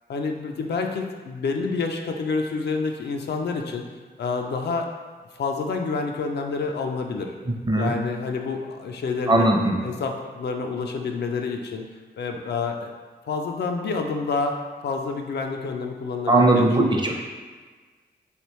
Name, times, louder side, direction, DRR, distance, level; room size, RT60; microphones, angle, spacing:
voice 1, 0.1-3.8 4.2-4.9 5.3-7.3 7.8-11.8 12.2-12.9 13.3-14.6 14.8-17.0, left 4 dB, 65° left, 3 dB, 0.4 m, -28 dB
voice 2, 7.5-7.9 9.3-9.7 16.3-17.2, right 2 dB, 25° right, 0 dB, 0.6 m, -19 dB
3.2 x 2.5 x 3.0 m, 1.4 s
cardioid pair, 50°, 19 cm